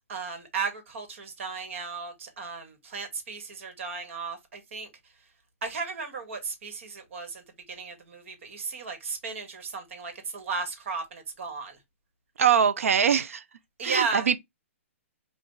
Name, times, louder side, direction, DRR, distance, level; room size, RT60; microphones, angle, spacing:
voice 1, 0.1-4.9 5.6-7.4 7.7-11.8 13.8-14.3, right 5 dB, 65° right, 1.3 m, -35 dB
voice 2, 12.4-13.4 13.8-14.4, right 7 dB, 80° right, 0.5 m, -22 dB
3.8 x 2.4 x 3.7 m
hypercardioid pair, 140°, 7 cm